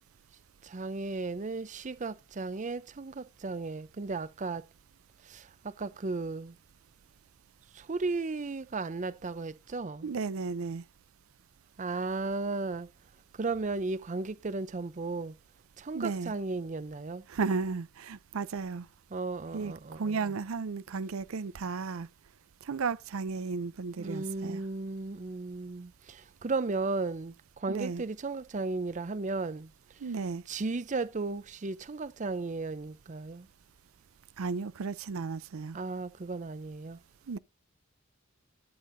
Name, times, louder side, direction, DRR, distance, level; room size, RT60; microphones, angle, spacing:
voice 1, 0.6-4.6 5.2-6.6 7.7-10.1 11.8-12.9 13.3-15.4 15.8-17.2 19.1-20.3 24.0-29.7 30.5-33.5 35.7-37.0, right 3 dB, 35° right, 0.5 m, -35 dB
voice 2, 10.0-10.8 15.9-16.3 17.3-18.9 19.5-22.1 22.6-24.6 27.7-28.0 30.0-30.4 34.4-35.8 37.3-37.4, right 4 dB, 85° right, 0.5 m, -34 dB
12.5 x 8.5 x 2.6 m
head